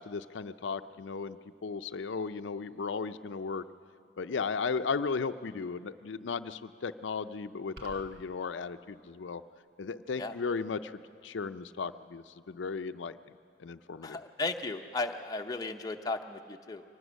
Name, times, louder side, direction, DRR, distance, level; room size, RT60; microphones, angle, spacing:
voice 1, 0.0-3.6 4.2-9.4 9.8-13.2 13.6-14.2, left 5 dB, 85° left, 11 dB, 0.5 m, -35 dB
sound 1, 7.8-8.2, right 1 dB, 65° right, 1.5 m, -48 dB
voice 2, 14.0-16.8, left 3 dB, 20° left, 4 dB, 0.7 m, -35 dB
23.5 x 19.0 x 6.3 m, 2.4 s
head